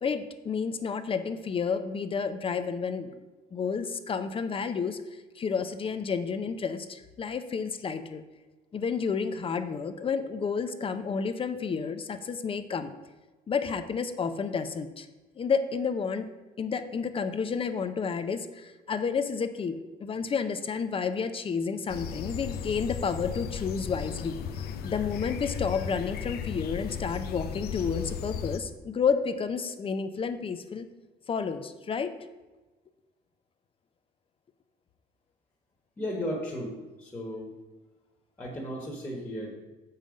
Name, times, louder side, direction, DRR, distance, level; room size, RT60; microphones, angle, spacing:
voice 1, 0.0-3.2 3.5-5.0 5.4-8.2 8.7-12.9 13.5-15.1 15.4-16.3 16.6-24.3 24.8-30.9 31.3-32.1, left 5 dB, 35° left, 10 dB, 0.6 m, -30 dB
sound 1, 21.9-28.6, left 8 dB, 70° left, 0.6 m, -35 dB
voice 2, 36.0-37.5 38.4-39.5, equal, 15° left, -3 dB, 1.5 m, -35 dB
7.0 x 5.6 x 5.1 m, 1.2 s
cardioid pair, 110°, 17 cm